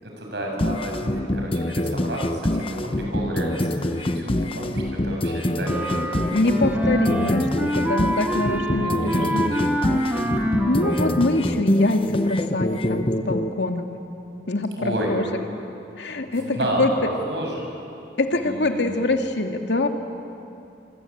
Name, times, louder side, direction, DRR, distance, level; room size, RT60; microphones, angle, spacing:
voice 1, 0.0-6.8 8.8-9.5 14.8-15.2 16.3-17.6 18.4-19.1, right 1 dB, 75° right, 0 dB, 7.2 m, -31 dB
sound 1, 0.6-13.5, left 1 dB, 30° left, 1.0 m, -25 dB
Wind instrument woodwind instrument, 5.6-11.5, equal, 10° right, 1.9 m, -26 dB
voice 2, 6.3-9.5 9.9-10.4 10.7-13.9 14.5-14.8 15.1-15.3 16.0-16.9 18.2-19.9, left 2 dB, 85° left, 4 dB, 2.3 m, -24 dB
26.5 x 24.0 x 8.6 m, 2.7 s
head